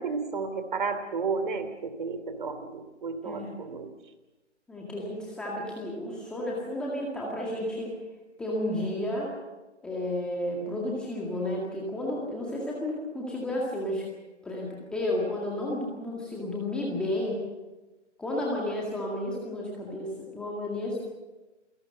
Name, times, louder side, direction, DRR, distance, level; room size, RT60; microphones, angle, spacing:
voice 1, 0.0-3.9, right 4 dB, 40° right, 9 dB, 2.9 m, -32 dB
voice 2, 3.3-3.6 4.7-8.0 8.4-9.3 9.8-14.1 14.4-17.4 18.2-21.0, left 1 dB, ahead, -3 dB, 2.0 m, -32 dB
28.5 x 18.5 x 6.6 m, 1.1 s
figure-of-eight pair, 150°, 36 cm